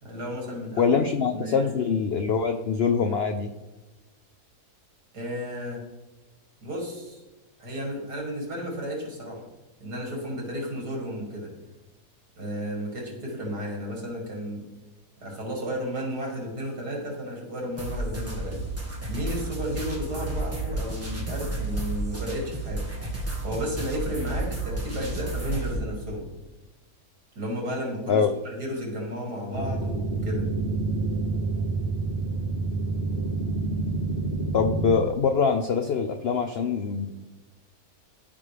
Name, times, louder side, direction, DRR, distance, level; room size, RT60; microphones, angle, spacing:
voice 1, 0.0-1.0 1.3-1.7 5.1-5.8 6.6-7.2 7.6-9.4 9.8-11.5 12.4-14.6 15.2-18.6 19.1-22.9 23.4-26.3 27.3-30.5, equal, 75° right, -1 dB, 2.9 m, -33 dB
voice 2, 0.8-3.5 28.1-28.3 34.5-37.2, left 6 dB, 80° left, 7 dB, 0.5 m, -24 dB
sound 1, 17.8-25.8, right 2 dB, 10° right, 1.3 m, -32 dB
sound 2, 29.5-35.0, right 3 dB, 50° right, 1.1 m, -28 dB
13.5 x 5.2 x 3.3 m, 1.2 s
omnidirectional pair, 1.7 m